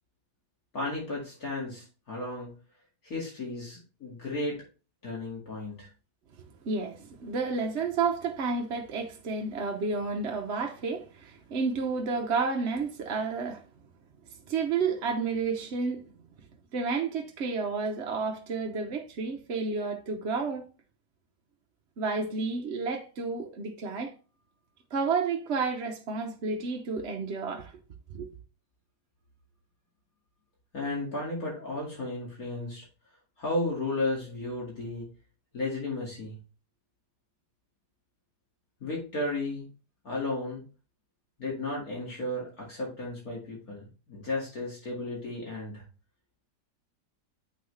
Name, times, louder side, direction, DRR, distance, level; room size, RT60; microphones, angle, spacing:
voice 1, 0.7-2.5 3.0-4.6 5.0-5.9 30.7-32.9 33.4-35.1 35.5-36.4 38.8-39.7 40.0-40.6 41.4-45.8, left 2 dB, 60° left, 2.6 m, -34 dB
voice 2, 6.6-13.6 14.5-16.0 16.7-20.7 22.0-24.1 24.9-27.7 28.1-28.3, right 4 dB, 50° right, 1.0 m, -31 dB
8.6 x 5.9 x 3.2 m
omnidirectional pair, 1.8 m